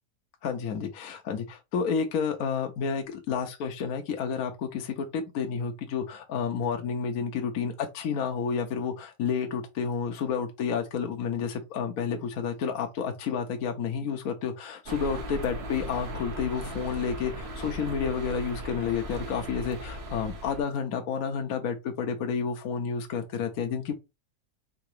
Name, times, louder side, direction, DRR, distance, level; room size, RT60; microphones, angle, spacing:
voice 1, 0.4-23.9, left 6 dB, 65° left, 1.1 m, -30 dB
sound 1, 14.9-20.6, right 1 dB, 45° right, 1.2 m, -37 dB
3.9 x 2.9 x 4.6 m
omnidirectional pair, 1.8 m